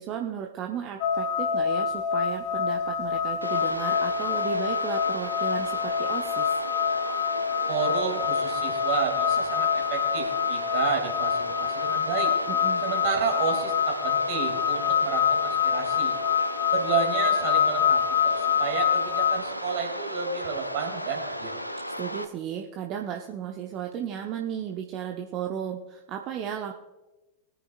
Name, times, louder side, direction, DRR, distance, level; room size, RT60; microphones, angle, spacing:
voice 1, 0.0-6.5 12.5-12.8 22.0-26.7, right 9 dB, 35° right, 3 dB, 0.8 m, -34 dB
sound 1, 1.0-19.4, left 7 dB, 45° left, 1.0 m, -26 dB
sound 2, 3.4-22.2, equal, 90° left, 0.6 m, -35 dB
voice 2, 7.7-12.3 12.8-16.2 16.7-21.6, right 6 dB, 50° right, 2 dB, 2.5 m, -31 dB
21.5 x 9.0 x 2.4 m, 1.1 s
figure-of-eight pair, 90°, 0 cm